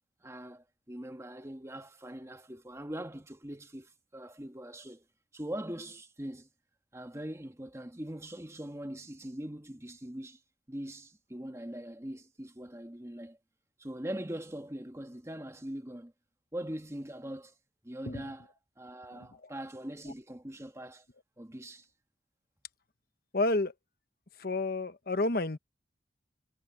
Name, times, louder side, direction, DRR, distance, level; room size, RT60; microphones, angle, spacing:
voice 1, 0.2-5.0 5.3-6.5 6.9-10.4 10.7-13.4 13.8-16.1 16.5-17.5 17.8-18.5 18.8-21.1 21.4-21.9, right 1 dB, 15° right, 1.4 m, -42 dB
voice 2, 23.3-23.7 24.4-25.6, left 2 dB, 55° left, 1.1 m, -30 dB
head